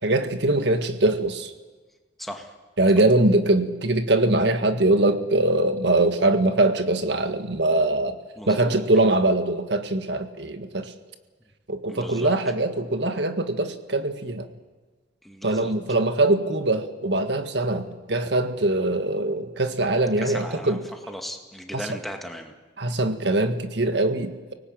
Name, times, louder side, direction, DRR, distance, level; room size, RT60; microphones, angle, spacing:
voice 1, 0.0-1.5 2.8-8.2 8.5-10.9 11.7-14.5 15.4-20.8 21.7-21.8 22.8-24.5, right 2 dB, 70° right, 8 dB, 1.8 m, -22 dB
voice 2, 8.4-8.8 11.9-12.3 15.2-15.7 20.2-20.8 21.1-22.5, equal, ahead, 3 dB, 2.1 m, -37 dB
24.0 x 19.0 x 8.9 m, 1.3 s
head